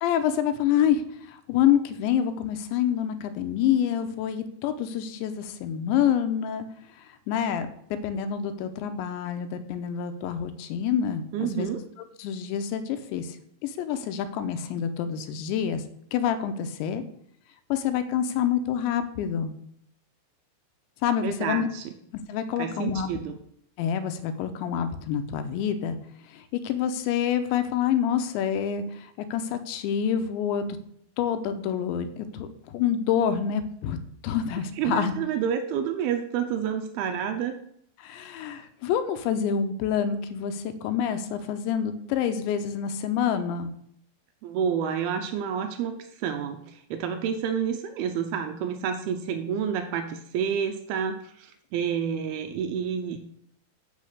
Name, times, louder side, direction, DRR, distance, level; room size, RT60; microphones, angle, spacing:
voice 1, 0.0-6.7 7.3-7.7 8.0-11.7 12.2-13.4 13.6-15.8 16.1-17.0 17.7-19.5 21.0-21.7 22.3-23.2 23.8-26.0 26.3-30.6 31.2-34.0 34.2-35.1 38.0-43.7, left 9 dB, 80° left, 9 dB, 3.0 m, -27 dB
voice 2, 11.3-11.8 21.2-21.8 22.6-23.4 34.7-37.6 44.4-53.3, right 8 dB, 90° right, 6 dB, 2.2 m, -29 dB
8.5 x 6.1 x 6.6 m, 0.69 s
omnidirectional pair, 5.3 m